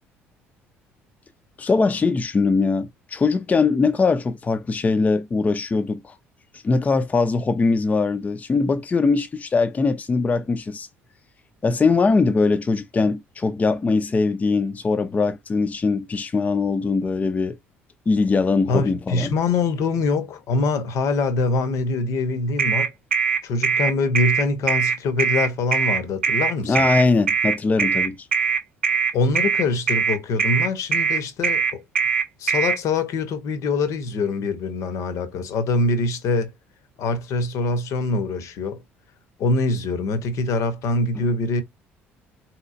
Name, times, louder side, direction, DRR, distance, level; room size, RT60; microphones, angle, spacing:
voice 1, 1.6-6.2 6.5-10.9 11.6-17.6 18.1-19.3 26.6-28.3 41.2-41.3, left 4 dB, 25° left, 0.4 m, -21 dB
voice 2, 18.7-22.9 23.4-26.8 29.1-31.8 32.4-36.5 37.0-38.8 39.4-41.6, left 3 dB, 55° left, 0.7 m, -24 dB
sound 1, 22.6-32.8, right 6 dB, 85° right, 0.5 m, -21 dB
3.9 x 2.9 x 2.5 m
figure-of-eight pair, 55°, 7 cm